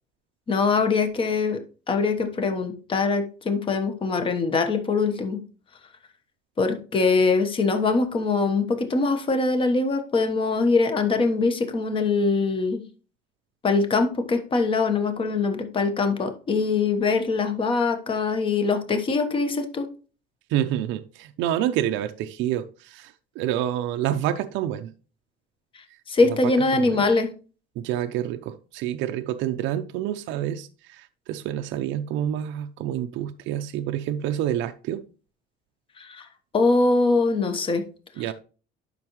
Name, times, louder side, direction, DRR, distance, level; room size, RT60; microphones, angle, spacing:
voice 1, 0.5-1.6 1.9-5.4 6.6-12.8 13.6-19.9 26.1-27.3 36.0-36.2 36.5-37.8, left 4 dB, 25° left, 1.2 m, -23 dB
voice 2, 20.5-24.9 26.2-27.1 27.8-35.0 38.2-38.3, right 11 dB, 80° right, 0.6 m, -28 dB
10.5 x 5.9 x 3.1 m
cardioid pair, 160°, 19 cm